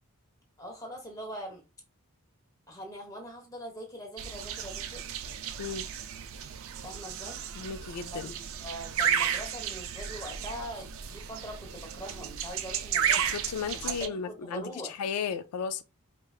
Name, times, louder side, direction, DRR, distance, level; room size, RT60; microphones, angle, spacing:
voice 1, 0.6-1.6 2.7-5.1 6.8-7.4 8.2-13.3 13.7-14.9, equal, 15° left, 1.1 m, -42 dB
sound 1, 4.2-14.1, right 8 dB, 60° right, 0.4 m, -33 dB
voice 2, 7.6-8.3 13.3-15.8, left 6 dB, 85° left, 0.3 m, -35 dB
4.7 x 2.3 x 2.3 m
head